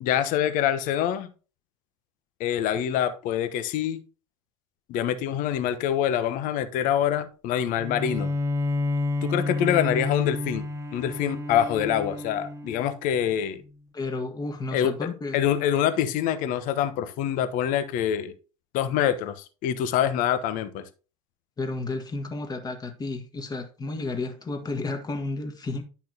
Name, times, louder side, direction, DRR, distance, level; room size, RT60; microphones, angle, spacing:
voice 1, 0.0-1.3 2.4-4.0 4.9-8.3 9.2-13.6 14.7-14.9 15.3-18.3 18.7-20.8, left 10 dB, 50° left, 1.0 m, -25 dB
Bowed string instrument, 7.8-13.2, left 2 dB, 15° right, 1.0 m, -30 dB
voice 2, 13.9-15.4 21.6-25.8, left 3 dB, 20° left, 1.6 m, -32 dB
10.5 x 6.0 x 2.8 m
figure-of-eight pair, 75°, 18 cm